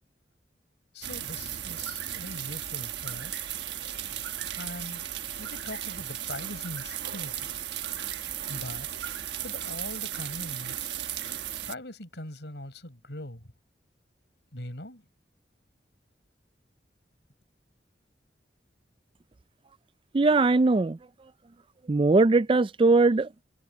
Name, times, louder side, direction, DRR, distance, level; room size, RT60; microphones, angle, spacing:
voice 1, 0.9-3.4 4.6-5.1 5.4-7.5 8.5-8.9 9.4-10.9 11.7-13.5 14.5-15.1, left 1 dB, 80° left, 4.9 m, -41 dB
sound 1, 1.0-11.7, right 11 dB, 80° right, 1.2 m, -35 dB
voice 2, 20.1-21.0 21.9-23.3, right 3 dB, 30° right, 0.4 m, -20 dB
head